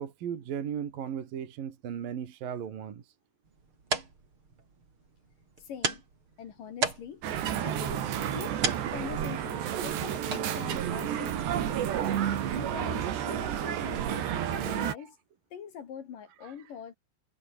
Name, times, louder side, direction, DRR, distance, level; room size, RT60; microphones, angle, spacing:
voice 1, 0.0-3.0 15.0-15.1 16.4-16.5, right 8 dB, 60° right, 3.9 m, -36 dB
sound 1, 3.4-12.7, right 4 dB, 30° right, 4.5 m, -38 dB
voice 2, 5.6-6.0 6.4-7.2 7.6-8.6 8.9-11.8 12.6-15.2 15.5-16.9, left 8 dB, 55° left, 3.4 m, -43 dB
sound 2, 7.2-14.9, right 10 dB, 90° right, 4.6 m, -31 dB
omnidirectional pair, 4.9 m